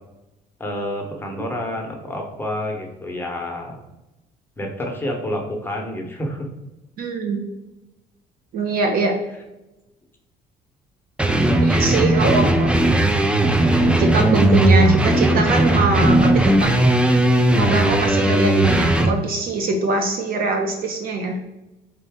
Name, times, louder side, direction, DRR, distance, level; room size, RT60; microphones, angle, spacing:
voice 1, 0.6-3.8 4.6-6.5 12.2-12.4, left 1 dB, 10° left, 1 dB, 0.9 m, -29 dB
voice 2, 7.0-7.4 8.5-9.1 11.6-12.7 14.0-16.7 17.5-21.4, right 3 dB, 60° right, 3 dB, 0.7 m, -22 dB
sound 1, 11.2-19.1, right 1 dB, 5° right, 0.3 m, -17 dB
4.3 x 2.6 x 3.5 m, 0.96 s
cardioid pair, 110°, 17 cm